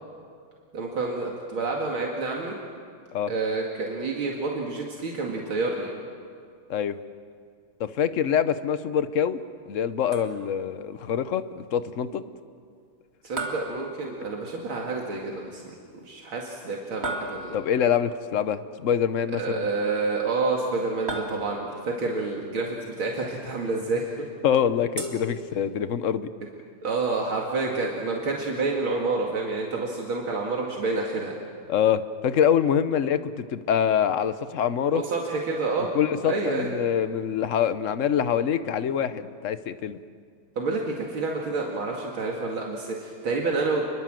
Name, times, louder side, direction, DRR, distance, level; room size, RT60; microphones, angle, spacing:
voice 1, 0.7-2.5 3.3-5.9 13.2-15.7 16.1-17.6 19.3-24.3 26.8-31.3 34.9-35.9 36.2-36.7 40.6-43.8, right 3 dB, 75° right, -1 dB, 3.0 m, -28 dB
voice 2, 7.8-9.4 9.7-11.4 11.7-12.2 17.5-19.6 24.4-26.3 31.7-35.0 35.9-40.0, left 8 dB, 55° left, 12 dB, 0.9 m, -25 dB
sound 1, 10.1-10.7 13.4-14.6 17.0-17.9 21.1-21.9 25.0-26.0, right 2 dB, 30° right, 2.7 m, -36 dB
28.0 x 22.0 x 7.7 m, 2.2 s
omnidirectional pair, 2.3 m